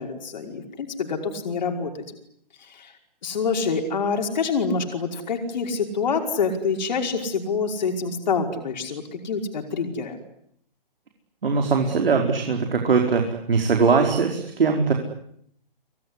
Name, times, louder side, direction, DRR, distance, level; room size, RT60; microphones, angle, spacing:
voice 1, 0.0-2.0 2.6-2.9 3.2-10.2, left 5 dB, 50° left, 3 dB, 5.3 m, -26 dB
voice 2, 11.4-13.2 13.5-14.9, right 5 dB, 75° right, 3 dB, 5.0 m, -20 dB
26.5 x 22.5 x 9.9 m, 0.70 s
hypercardioid pair, 170°, 29 cm